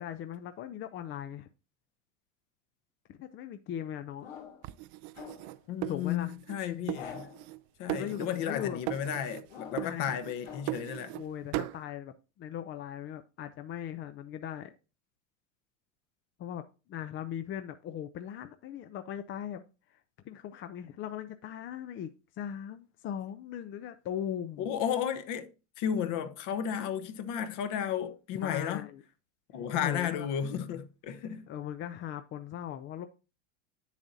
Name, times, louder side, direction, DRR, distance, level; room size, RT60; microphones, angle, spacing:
voice 1, 0.0-1.5 3.1-4.3 5.9-6.3 7.9-8.8 9.8-10.1 11.1-14.7 16.4-16.6 16.9-19.6 19.9-24.7 28.3-29.0 29.7-30.3 31.5-33.1, left 10 dB, 30° left, 0.5 m, -39 dB
sound 1, 4.2-4.7 5.1-5.6 6.9-7.5 8.4-9.0 9.5-10.0 10.4-10.8, left 7 dB, 90° left, 2.8 m, -46 dB
sound 2, 4.6-6.6 6.9-7.6 7.9-8.6 8.9-9.5 9.8-11.2 11.5-11.8, right 18 dB, 50° right, 0.4 m, -38 dB
voice 2, 5.7-7.3 7.8-11.1 24.6-25.5 25.8-28.9 29.5-31.5, left 9 dB, 50° left, 1.0 m, -33 dB
8.0 x 7.2 x 2.6 m
supercardioid pair, 115°, 39 cm